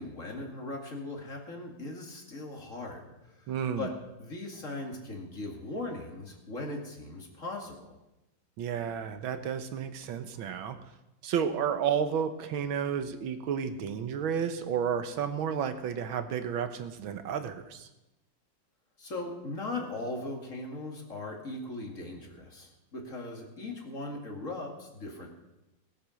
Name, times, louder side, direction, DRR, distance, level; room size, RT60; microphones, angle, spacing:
voice 1, 0.0-3.9 4.2-7.9 19.0-25.3, left 2 dB, 40° left, 1 dB, 2.6 m, -39 dB
voice 2, 3.5-3.9 8.6-10.8 11.2-17.9, right 7 dB, 80° right, 9 dB, 1.8 m, -31 dB
18.5 x 8.7 x 6.4 m, 0.95 s
omnidirectional pair, 2.2 m